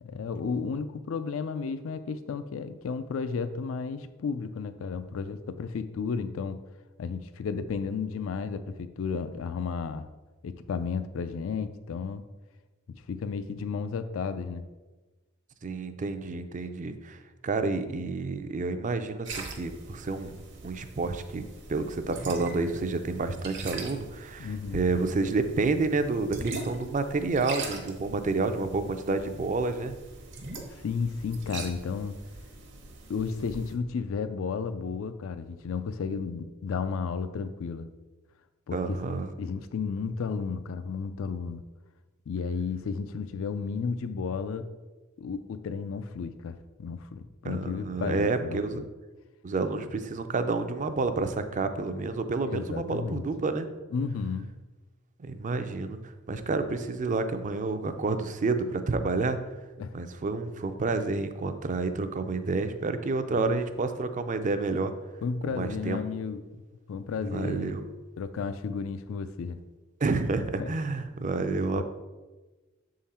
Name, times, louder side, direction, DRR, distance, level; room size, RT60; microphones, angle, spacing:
voice 1, 0.0-6.6 7.0-10.1 10.4-12.2 12.9-14.7 24.4-24.8 30.7-32.2 33.1-37.9 38.7-39.0 39.4-41.6 42.3-44.7 45.2-48.8 52.4-53.2 53.9-54.5 59.8-59.9 63.4-63.5 65.2-66.4 66.9-67.7 68.2-69.6 70.6-70.7 71.7-71.8, left 5 dB, 70° left, 11 dB, 0.4 m, -33 dB
voice 2, 15.6-20.4 20.6-21.4 21.7-29.9 38.7-39.3 47.4-48.8 49.4-53.7 55.2-56.0 56.3-59.4 59.9-64.9 65.5-66.0 67.2-67.9 70.0-71.8, right 3 dB, 40° right, 9 dB, 0.4 m, -29 dB
sound 1, 19.2-33.7, right 3 dB, 60° right, 0.9 m, -42 dB
7.0 x 3.8 x 4.2 m, 1.2 s
head